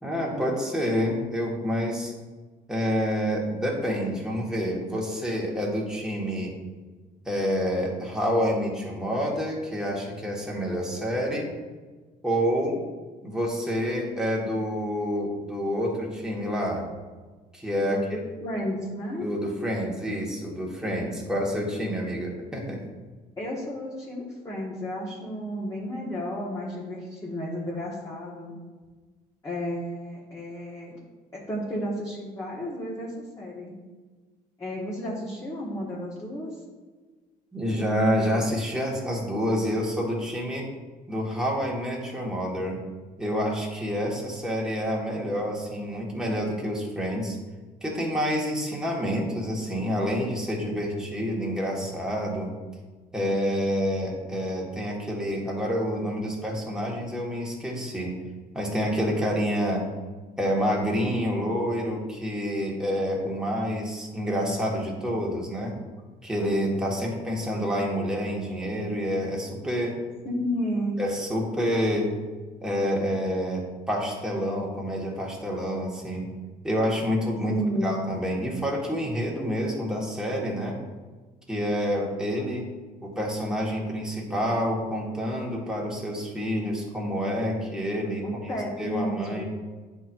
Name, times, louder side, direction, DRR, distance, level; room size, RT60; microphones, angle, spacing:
voice 1, 0.0-2.1 2.7-6.5 7.2-11.5 12.2-12.8 13.2-16.9 17.5-18.0 19.2-22.8 37.5-40.7 41.1-42.8 43.2-47.4 47.8-52.5 53.1-58.2 58.5-59.9 60.4-65.8 66.2-70.0 71.0-72.1 72.6-76.3 76.6-77.6 77.8-80.8 81.5-82.6 83.0-89.4, equal, 5° right, -3 dB, 1.6 m, -28 dB
voice 2, 17.9-19.3 23.4-28.5 29.4-31.0 31.3-33.7 34.6-36.5 70.2-71.0 77.5-78.0 88.2-89.4, equal, 20° left, -7 dB, 1.6 m, -32 dB
10.0 x 4.4 x 2.6 m, 1.3 s
cardioid pair, 110°, 17 cm